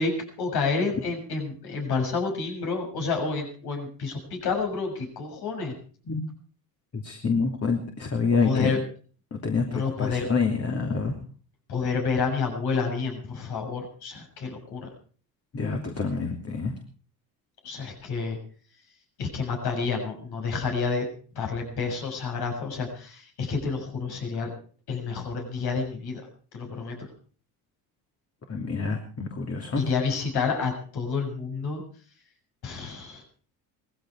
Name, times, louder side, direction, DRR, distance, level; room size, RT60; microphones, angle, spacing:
voice 1, 0.0-5.7 8.4-8.8 9.7-10.3 11.7-14.9 17.6-18.4 19.2-21.1 21.3-24.5 24.9-26.2 26.5-27.1 29.8-31.8 32.6-33.2, left 4 dB, 65° left, 2 dB, 6.8 m, -29 dB
voice 2, 6.9-8.7 9.3-11.2 15.5-16.7 28.5-29.8, left 4 dB, 35° left, 3 dB, 3.0 m, -27 dB
19.0 x 15.5 x 4.8 m, 0.43 s
supercardioid pair, 75°, 42 cm